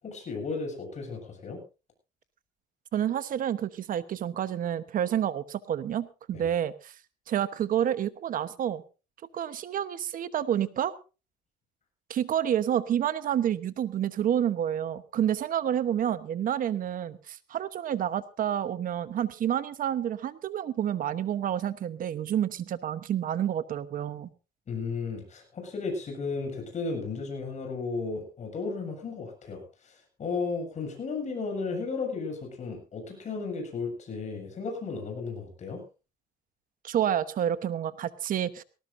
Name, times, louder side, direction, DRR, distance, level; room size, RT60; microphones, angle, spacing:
voice 1, 0.0-1.6 6.3-6.5 24.7-35.8, left 4 dB, 45° left, 3 dB, 7.7 m, -34 dB
voice 2, 2.9-6.9 7.3-8.8 9.3-10.9 12.1-24.3 36.8-38.6, right 10 dB, 55° right, 14 dB, 1.0 m, -29 dB
19.0 x 18.0 x 2.6 m, 0.31 s
cardioid pair, 110°, 17 cm